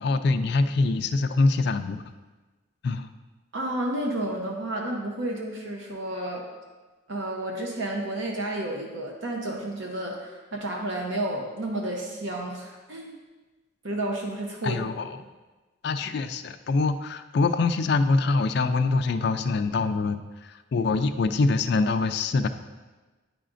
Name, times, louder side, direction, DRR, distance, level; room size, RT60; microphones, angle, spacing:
voice 1, 0.0-2.0 2.8-3.1 14.6-15.2 15.8-22.5, left 3 dB, 55° left, 9 dB, 0.3 m, -24 dB
voice 2, 3.5-6.4 7.1-13.1 13.8-14.8, right 1 dB, 65° right, -1 dB, 0.8 m, -31 dB
10.0 x 4.9 x 2.5 m, 1.2 s
head